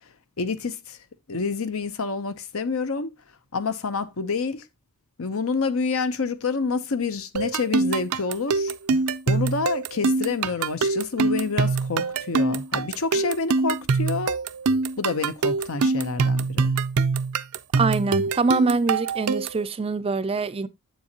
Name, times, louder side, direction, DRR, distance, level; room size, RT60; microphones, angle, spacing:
voice 1, 0.4-1.0 1.3-3.1 3.5-4.7 5.2-8.7 9.3-14.4 15.0-16.7, left 4 dB, 70° left, 0.8 m, -28 dB
sound 1, 7.4-19.7, right 4 dB, 85° right, 0.5 m, -24 dB
voice 2, 17.8-20.7, right 4 dB, 25° right, 0.4 m, -24 dB
7.6 x 7.0 x 2.9 m
head